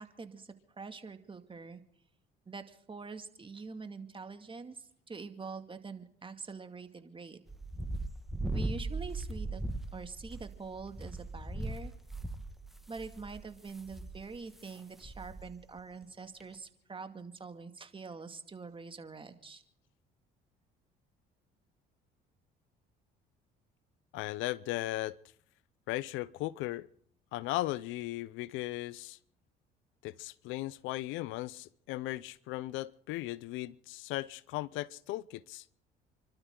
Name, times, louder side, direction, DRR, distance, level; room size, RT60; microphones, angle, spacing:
voice 1, 0.0-1.8 2.5-7.4 8.5-9.6 9.9-11.9 12.9-19.6, right 4 dB, 25° right, 2.3 m, -45 dB
sound 1, 7.5-14.7 15.0-15.5 15.8-15.9 16.4-16.5, right 2 dB, ahead, 1.8 m, -39 dB
voice 2, 24.1-25.2 25.9-26.9 27.3-29.2 30.0-35.6, left 17 dB, 80° left, 0.6 m, -37 dB
30.0 x 12.5 x 3.8 m
supercardioid pair, 75°, 20 cm